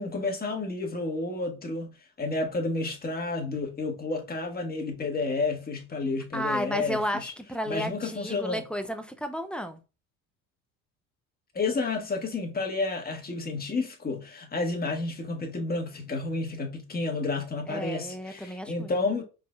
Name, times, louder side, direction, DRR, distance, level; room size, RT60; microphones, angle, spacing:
voice 1, 0.0-1.9 2.2-7.3 7.6-8.6 11.5-19.2, left 3 dB, 20° left, 1.5 m, -31 dB
voice 2, 6.3-9.8 17.7-18.9, equal, ahead, 0.6 m, -32 dB
4.7 x 4.0 x 2.3 m
hypercardioid pair, 70°, 45 cm